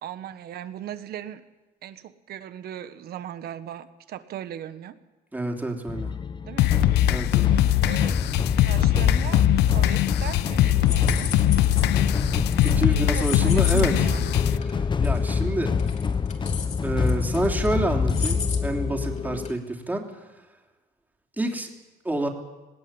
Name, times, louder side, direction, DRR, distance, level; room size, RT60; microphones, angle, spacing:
voice 1, 0.0-1.4 1.8-5.0 6.4-6.7 7.8-8.2 8.6-9.4 9.7-11.3 12.9-14.3, right 11 dB, 65° right, 11 dB, 1.5 m, -37 dB
voice 2, 5.3-6.1 7.1-7.5 12.6-13.9 14.7-15.7 16.8-20.1 21.4-21.7 22.0-22.3, right 1 dB, 10° right, 2 dB, 3.3 m, -28 dB
sound 1, 5.9-19.5, left 5 dB, 25° left, 0.9 m, -26 dB
sound 2, 6.6-14.6, left 15 dB, 80° left, 0.8 m, -22 dB
sound 3, 10.0-10.4 10.7-12.0 12.5-12.8 13.1-13.8 14.1-14.2 14.6-14.7 15.0-15.3 15.6-17.7 18.1-18.6 19.0-19.2 19.4-19.5, left 6 dB, 40° left, 3.6 m, -34 dB
19.5 x 17.5 x 9.0 m, 1.2 s
cardioid pair, 110°, 17 cm